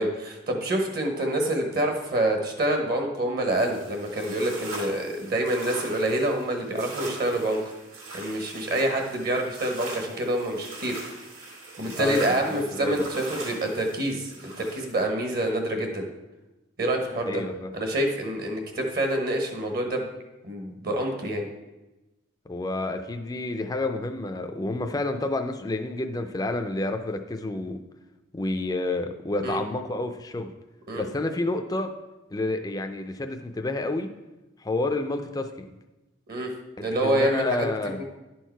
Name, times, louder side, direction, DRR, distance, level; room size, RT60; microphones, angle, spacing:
voice 1, 0.0-7.6 8.1-11.0 11.8-16.1 16.8-17.4 17.7-20.1 20.4-21.5 29.4-29.6 30.9-31.0 36.3-36.5 36.8-37.7 38.0-38.1, right 1 dB, 50° right, 3 dB, 1.1 m, -27 dB
sound 1, 3.6-15.0, right 2 dB, 80° right, 2.3 m, -41 dB
voice 2, 12.0-13.0 17.2-17.7 22.5-27.8 28.3-30.5 30.9-31.9 32.3-34.1 34.6-35.7 37.0-38.0, left 2 dB, 20° left, 6 dB, 0.4 m, -29 dB
10.5 x 4.6 x 4.5 m, 1.0 s
head